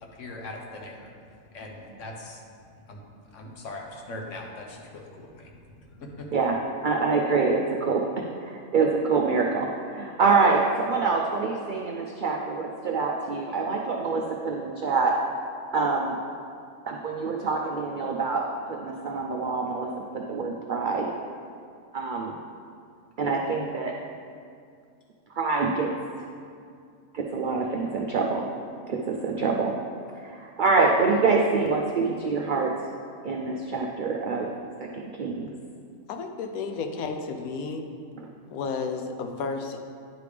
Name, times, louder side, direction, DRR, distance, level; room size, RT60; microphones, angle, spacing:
voice 1, 0.2-1.1 1.5-2.4 2.9-3.0 3.3-5.4 6.0-6.3, left 2 dB, 60° left, 0 dB, 1.2 m, -40 dB
voice 2, 6.3-15.2 15.7-16.2 16.9-19.9 20.1-21.1 21.9-22.4 23.2-24.0 25.3-25.9 27.1-28.5 28.9-29.7 30.2-32.7 33.2-34.5 34.8-35.5, right 4 dB, 90° right, 0 dB, 0.4 m, -25 dB
voice 3, 36.1-37.9 38.5-39.8, left 4 dB, 85° left, 5 dB, 1.1 m, -32 dB
10.0 x 3.4 x 4.9 m, 2.3 s
omnidirectional pair, 1.5 m